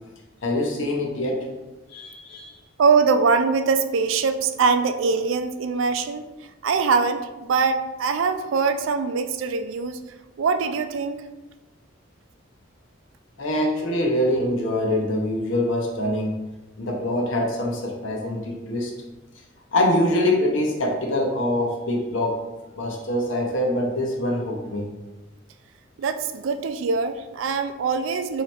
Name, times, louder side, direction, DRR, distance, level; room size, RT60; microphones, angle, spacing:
voice 1, 0.4-1.5 1.9-2.5 13.4-16.3 16.8-18.9 19.7-22.4 22.8-24.9, left 1 dB, 80° left, 0 dB, 0.8 m, -24 dB
voice 2, 2.8-6.3 6.6-10.0 10.4-11.2 26.0-28.4, right 5 dB, 80° right, 9 dB, 0.3 m, -22 dB
3.1 x 2.9 x 4.3 m, 1.1 s
head